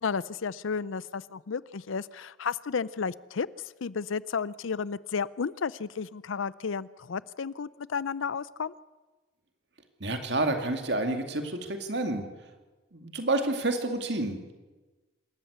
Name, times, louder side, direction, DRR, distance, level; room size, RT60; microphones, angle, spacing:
voice 1, 0.0-8.7, left 5 dB, 90° left, 19 dB, 0.6 m, -33 dB
voice 2, 10.0-12.3 12.9-14.5, right 2 dB, 60° right, 5 dB, 2.4 m, -29 dB
26.0 x 13.5 x 8.1 m, 1.2 s
head